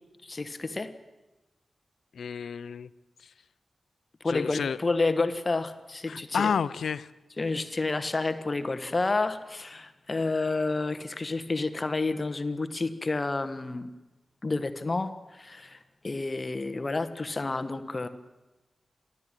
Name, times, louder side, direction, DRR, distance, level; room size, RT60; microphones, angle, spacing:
voice 1, 0.2-0.9 4.2-6.5 7.4-13.9 14.4-18.1, left 3 dB, 35° left, 11 dB, 1.4 m, -30 dB
voice 2, 2.1-2.9 4.3-4.8 6.1-7.1, left 6 dB, 90° left, 17 dB, 0.6 m, -30 dB
29.5 x 12.5 x 9.1 m, 1.1 s
wide cardioid pair, 75°, 0 cm